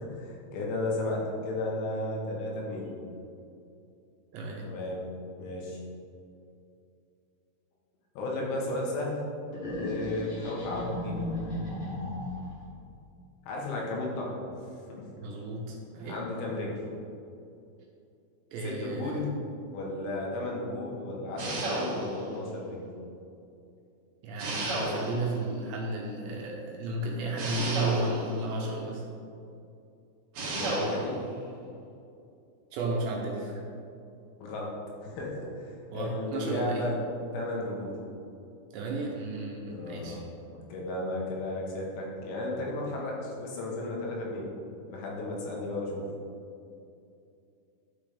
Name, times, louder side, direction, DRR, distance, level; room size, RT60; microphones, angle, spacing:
voice 1, 0.0-2.9 4.6-5.0 5.4-5.8 8.2-9.2 9.7-11.6 13.5-14.4 15.0-15.1 16.0-16.8 18.6-19.3 19.7-22.8 30.5-31.1 34.4-34.7 35.0-37.0 37.3-37.9 39.7-40.2 40.7-44.5 44.9-46.1, left 2 dB, 75° left, -3 dB, 3.6 m, -34 dB
voice 2, 4.3-4.7 15.2-16.2 18.5-19.3 24.2-29.0 32.7-33.6 35.9-36.9 38.7-40.2, right 2 dB, 80° right, -1 dB, 2.8 m, -33 dB
sound 1, 9.5-12.6, left 1 dB, 50° left, 1.6 m, -35 dB
sound 2, 21.4-22.3 24.4-25.3 27.4-28.4 30.3-31.1, right 1 dB, 55° right, 2.0 m, -32 dB
12.0 x 5.6 x 3.4 m, 2.6 s
omnidirectional pair, 5.6 m